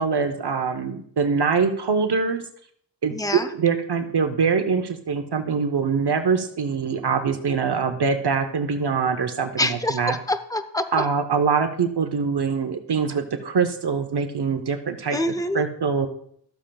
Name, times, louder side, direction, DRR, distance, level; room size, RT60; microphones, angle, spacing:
voice 1, 0.0-2.4 3.0-10.1 10.9-15.2 15.5-16.1, right 5 dB, 65° right, 7 dB, 0.8 m, -23 dB
voice 2, 3.1-3.5 9.6-11.0 15.1-15.6, left 1 dB, 10° left, 10 dB, 0.5 m, -26 dB
13.0 x 7.5 x 2.3 m, 0.65 s
wide cardioid pair, 60°, 43 cm